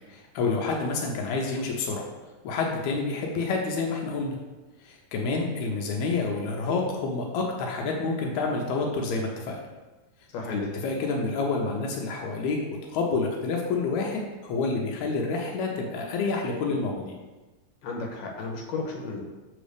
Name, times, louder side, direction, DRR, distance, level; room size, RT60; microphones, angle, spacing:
voice 1, 0.1-2.1 2.4-4.4 4.8-9.6 10.5-12.6 12.9-17.2, left 3 dB, 90° left, 0 dB, 2.0 m, -28 dB
voice 2, 10.3-10.7 17.8-19.2, left 3 dB, 75° left, 0 dB, 2.1 m, -33 dB
6.2 x 4.7 x 3.3 m, 1.2 s
omnidirectional pair, 3.3 m